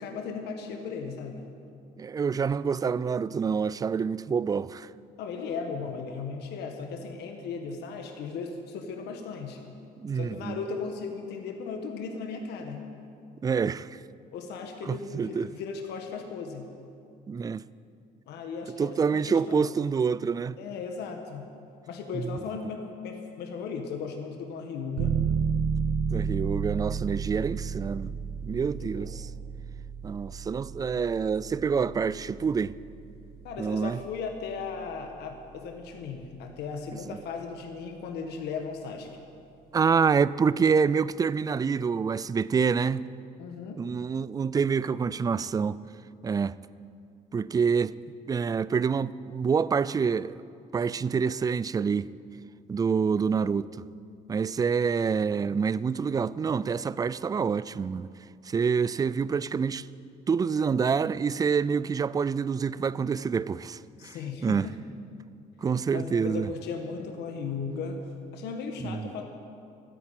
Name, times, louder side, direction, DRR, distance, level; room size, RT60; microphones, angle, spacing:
voice 1, 0.0-1.4 5.2-9.6 10.1-12.8 14.3-16.7 18.3-19.6 20.6-21.5 21.9-25.2 28.5-29.3 33.4-39.2 43.4-43.8 64.0-64.8 65.9-68.0 68.3-69.3, left 5 dB, 80° left, 1.5 m, -36 dB
voice 2, 2.0-4.9 10.0-10.6 13.4-14.0 14.9-15.5 17.3-17.6 18.8-20.6 22.1-22.4 26.1-29.3 30.0-32.8 33.6-34.0 37.1-37.2 39.7-43.1 43.8-45.8 46.2-46.6 47.3-48.0 48.3-50.4 50.7-52.1 52.7-53.7 54.3-58.1 58.4-59.9 60.3-64.2 64.4-64.7 65.6-66.5 68.8-69.1, right 6 dB, 20° right, 0.3 m, -27 dB
sound 1, 25.0-35.5, right 6 dB, 65° right, 1.2 m, -32 dB
13.0 x 10.0 x 8.7 m
cardioid pair, 110°, 17 cm